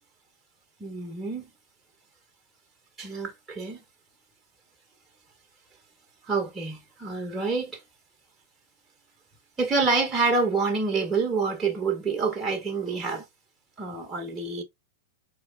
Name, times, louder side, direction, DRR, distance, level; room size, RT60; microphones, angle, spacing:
voice 1, 0.8-1.5 3.0-3.8 6.3-7.8 9.6-13.2 13.8-14.6, right 4 dB, 20° right, 1.7 m, -27 dB
5.0 x 4.3 x 2.3 m
hypercardioid pair, 110°, 0 cm